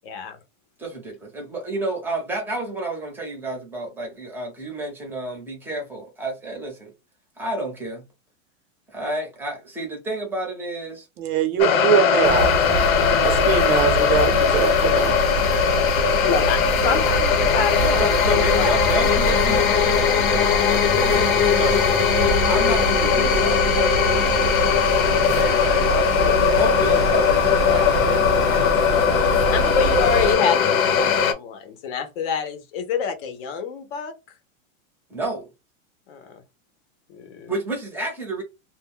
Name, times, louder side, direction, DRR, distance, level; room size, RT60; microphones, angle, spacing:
voice 1, 0.0-0.4 15.6-15.7 16.0-18.1 18.5-18.8 20.4-20.8 24.3-24.8 29.5-34.1 36.1-36.4 37.1-37.5, left 6 dB, 45° left, 0.6 m, -27 dB
voice 2, 0.8-6.9 7.4-8.0 8.9-11.1 16.4-17.2 17.5-21.5 22.5-23.7 25.0-29.6 35.1-35.5 37.5-38.4, right 2 dB, 5° right, 0.6 m, -30 dB
voice 3, 11.2-12.5 13.2-15.1, right 8 dB, 85° right, 0.8 m, -22 dB
sound 1, 11.6-31.3, left 7 dB, 80° left, 0.8 m, -19 dB
sound 2, 12.2-30.4, right 4 dB, 45° right, 0.6 m, -27 dB
2.2 x 2.1 x 3.4 m
supercardioid pair, 150°, 41 cm